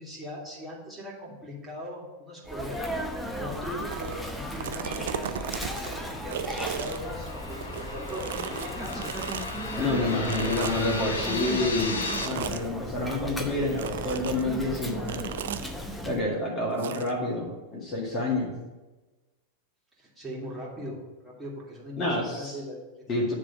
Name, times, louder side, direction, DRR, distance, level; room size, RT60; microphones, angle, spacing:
voice 1, 0.0-2.8 3.3-9.1 9.7-10.3 20.0-21.0 21.2-23.3, equal, 10° right, -5 dB, 2.3 m, -40 dB
Sneeze, 2.4-16.2, equal, 5° left, 0.8 m, -36 dB
sound 1, 3.9-4.2 4.5-7.8 8.1-9.6 10.2-11.0 12.0-12.7 13.7-14.4 15.1-15.7 16.8-17.1, right 10 dB, 60° right, 0.4 m, -36 dB
sound 2, 4.5-12.3, left 3 dB, 75° left, 0.8 m, -37 dB
voice 2, 9.8-15.3 16.0-18.5 22.0-22.6 23.1-23.3, left 2 dB, 25° left, -2 dB, 1.9 m, -28 dB
9.9 x 3.4 x 6.8 m, 1.1 s
figure-of-eight pair, 90°, 0 cm